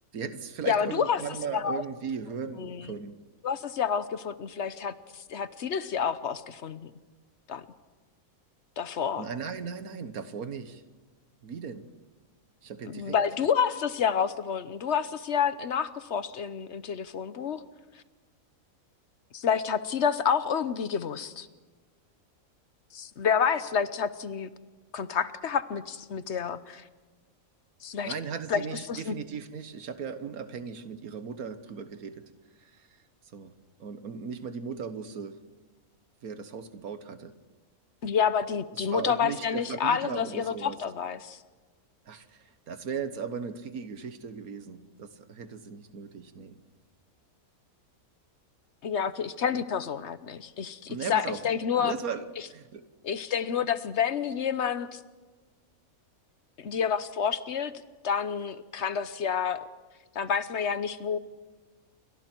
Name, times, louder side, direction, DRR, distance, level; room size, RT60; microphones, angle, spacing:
voice 1, 0.1-3.1 9.2-10.8 11.4-11.9 12.6-13.2 28.0-32.2 32.6-32.7 33.3-33.5 33.8-35.4 36.2-37.3 38.7-40.8 42.0-46.6 50.9-51.4 51.8-52.2 52.5-52.8, right 6 dB, 85° right, 11 dB, 1.7 m, -37 dB
voice 2, 0.7-1.2 1.5-1.8 2.6-2.9 3.4-6.9 7.5-7.6 8.8-9.3 12.9-17.6 19.3-21.5 22.9-24.5 24.9-26.8 27.8-28.1 28.5-29.2 38.0-41.4 48.8-51.9 53.0-55.0 56.6-57.7 58.0-59.6 60.1-61.2, left 7 dB, 55° left, 13 dB, 1.1 m, -29 dB
29.0 x 24.0 x 4.5 m, 1.3 s
omnidirectional pair, 1.5 m